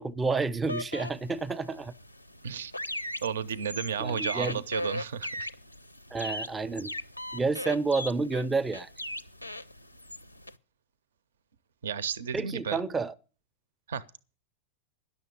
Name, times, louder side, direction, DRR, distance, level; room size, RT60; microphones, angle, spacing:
voice 1, 0.0-1.9 4.0-4.6 6.1-6.9 7.3-8.9 12.3-13.1, right 4 dB, 15° right, 0.5 m, -30 dB
sound 1, 0.7-10.6, left 1 dB, 90° left, 0.5 m, -39 dB
voice 2, 3.2-5.5 11.8-12.8 13.9-14.0, right 7 dB, 65° right, 0.5 m, -33 dB
10.5 x 6.9 x 8.5 m
figure-of-eight pair, 90°, 0 cm